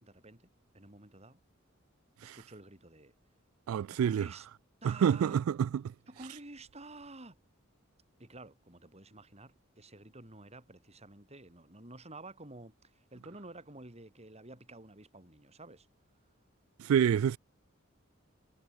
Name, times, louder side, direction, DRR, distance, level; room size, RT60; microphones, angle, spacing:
voice 1, 0.0-1.4 2.2-3.1 4.0-4.5 4.8-5.4 6.1-7.4 8.2-15.9, right 2 dB, 30° right, 4.5 m, -51 dB
voice 2, 3.7-4.3 4.8-5.9 16.8-17.4, right 8 dB, 90° right, 0.3 m, -28 dB
head